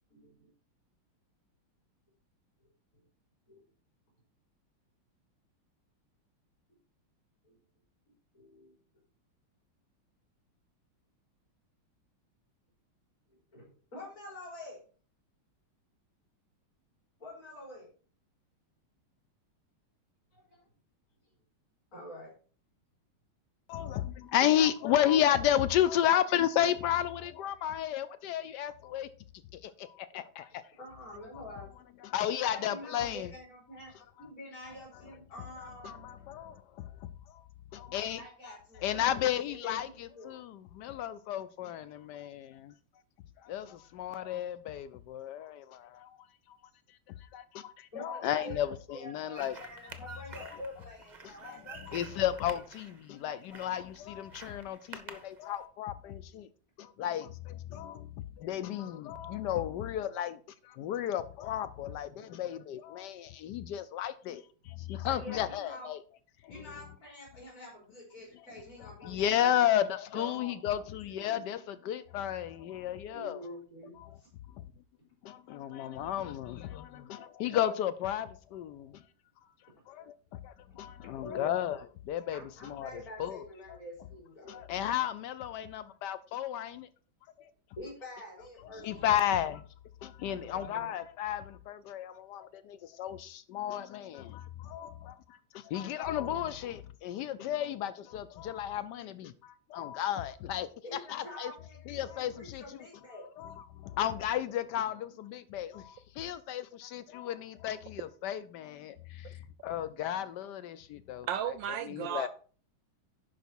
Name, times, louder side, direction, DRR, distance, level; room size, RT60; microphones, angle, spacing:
voice 1, 0.1-0.5 3.5-3.6 7.4-7.5 8.3-8.7 13.3-14.8 17.2-17.9 20.3-20.7 21.9-22.3 30.8-31.7 32.5-33.9 34.2-36.1 38.2-40.3 47.9-48.6 48.9-52.2 52.5-52.6 65.0-65.9 66.5-69.7 70.1-70.8 71.1-71.5 73.1-74.3 80.7-80.8 81.2-81.6 82.3-84.6 87.8-89.2 90.2-91.0 100.8-103.3, left 1 dB, 35° left, 4.4 m, -47 dB
voice 2, 23.7-29.1 29.5-30.6 32.0-33.3 35.8-37.4 37.7-38.2 38.5-38.6 38.8-42.7 43.4-46.2 46.5-46.6 47.3-49.9 50.4-50.5 51.4-56.5 56.8-58.1 58.4-66.0 66.4-66.7 68.8-73.4 74.0-74.2 74.5-74.6 75.2-79.0 79.9-81.8 82.0-83.4 84.5-86.9 87.4-87.5 88.7-89.6 90.0-100.7 101.1-101.5 101.9-102.9 103.4-111.3 111.8-112.3, left 11 dB, 80° left, 0.9 m, -33 dB
sound 1, 49.3-55.6, right 5 dB, 40° right, 0.6 m, -49 dB
voice 3, 111.3-112.3, right 10 dB, 75° right, 1.1 m, -34 dB
11.0 x 5.1 x 4.5 m
omnidirectional pair, 2.4 m